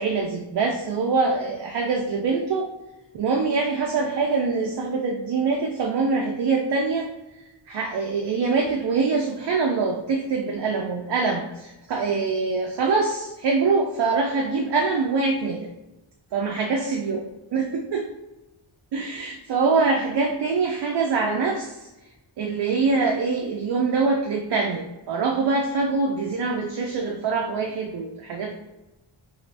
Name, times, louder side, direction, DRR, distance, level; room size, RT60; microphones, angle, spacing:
voice 1, 0.0-2.7 3.1-7.1 7.7-15.7 16.3-17.2 17.5-18.0 18.9-21.9 22.4-28.5, right 4 dB, 60° right, 0 dB, 0.5 m, -24 dB
2.7 x 2.6 x 3.2 m, 0.98 s
wide cardioid pair, 80°, 48 cm